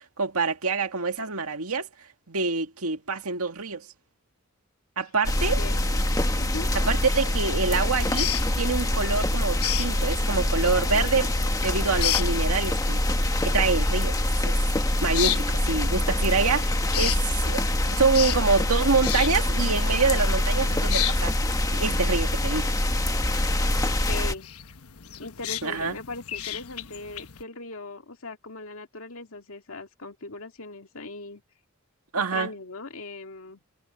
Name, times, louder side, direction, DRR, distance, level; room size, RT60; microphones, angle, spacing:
voice 1, 0.0-1.9 2.3-3.9 5.0-5.6 6.7-8.3 8.6-13.0 13.4-14.2 14.4-14.6 15.0-21.4 21.7-22.7 25.6-26.0 32.1-32.5, right 4 dB, 90° right, 2.0 m, -26 dB
sound 1, 5.2-24.3, left 1 dB, 15° left, 1.4 m, -25 dB
voice 2, 5.5-6.1 6.4-6.7 24.1-24.5 25.2-31.4 32.2-33.6, left 3 dB, 70° left, 2.2 m, -39 dB
sound 2, 8.0-27.4, left 12 dB, 90° left, 1.2 m, -35 dB
head